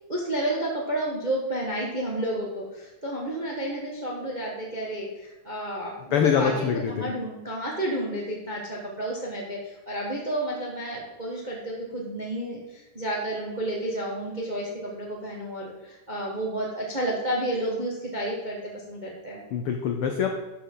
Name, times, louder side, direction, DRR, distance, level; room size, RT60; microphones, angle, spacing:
voice 1, 0.1-19.4, right 1 dB, 35° right, -2 dB, 0.7 m, -31 dB
voice 2, 6.1-7.1 19.5-20.4, left 7 dB, 80° left, 4 dB, 1.2 m, -24 dB
12.0 x 6.8 x 3.8 m, 1.0 s
omnidirectional pair, 3.5 m